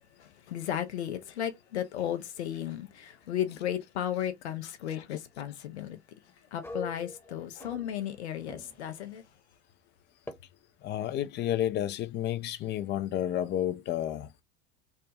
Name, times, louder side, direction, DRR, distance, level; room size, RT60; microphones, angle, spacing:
voice 1, 0.2-6.0 6.5-9.3, left 10 dB, 75° left, 0.8 m, -34 dB
sound 1, 6.6-8.2 8.5-8.9 10.3-10.4, left 1 dB, 5° left, 0.9 m, -43 dB
voice 2, 10.8-14.3, left 11 dB, 35° left, 0.5 m, -31 dB
3.4 x 2.2 x 2.8 m
hypercardioid pair, 80°, 33 cm